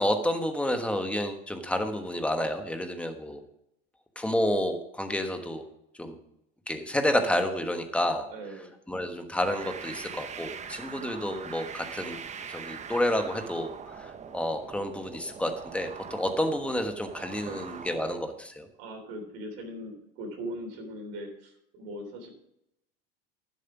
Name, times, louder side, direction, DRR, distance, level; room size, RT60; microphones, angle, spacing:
voice 1, 0.0-3.4 4.1-5.6 6.0-6.2 6.7-8.2 8.9-12.2 12.5-18.7, left 1 dB, 5° left, 6 dB, 1.3 m, -30 dB
voice 2, 8.3-8.7 17.3-17.6 18.8-22.3, right 1 dB, 70° right, 2 dB, 3.5 m, -40 dB
sound 1, 9.4-18.2, right 7 dB, 25° right, 0.8 m, -42 dB
11.0 x 7.6 x 5.9 m, 0.80 s
supercardioid pair, 120°, 31 cm